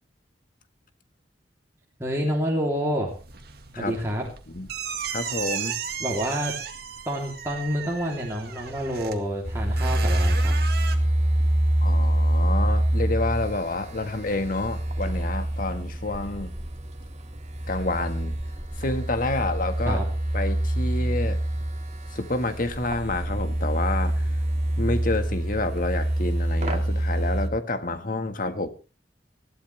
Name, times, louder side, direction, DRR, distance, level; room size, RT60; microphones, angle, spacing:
voice 1, 2.0-3.1 3.8-4.3 6.0-6.5 7.0-10.6 19.9-20.0, equal, 15° right, 3.2 m, -28 dB
sound 1, 3.1-11.0, right 7 dB, 60° right, 1.9 m, -35 dB
voice 2, 5.1-5.8 11.8-16.5 17.7-18.4 18.8-20.0 20.3-21.4 22.1-24.3 24.8-28.7, left 2 dB, 50° left, 1.7 m, -29 dB
sound 2, 9.4-27.5, right 1 dB, 40° right, 2.2 m, -26 dB
20.5 x 14.5 x 3.4 m
head